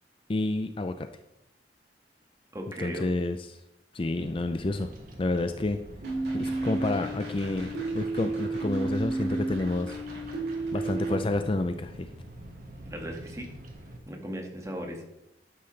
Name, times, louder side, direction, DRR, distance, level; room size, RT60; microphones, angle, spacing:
voice 1, 0.3-1.1 2.8-3.6 3.9-4.9 5.2-5.8 6.3-10.0 10.7-12.1, left 2 dB, 30° left, 9 dB, 0.5 m, -29 dB
voice 2, 2.5-3.1 12.9-13.5 14.1-15.1, equal, 15° right, 1 dB, 1.7 m, -37 dB
Bird vocalization bird call bird song, 4.2-14.0, right 1 dB, 50° right, 1.8 m, -46 dB
sound 1, 6.0-11.2, right 2 dB, 65° right, 4.1 m, -32 dB
11.5 x 9.4 x 3.3 m, 0.86 s
head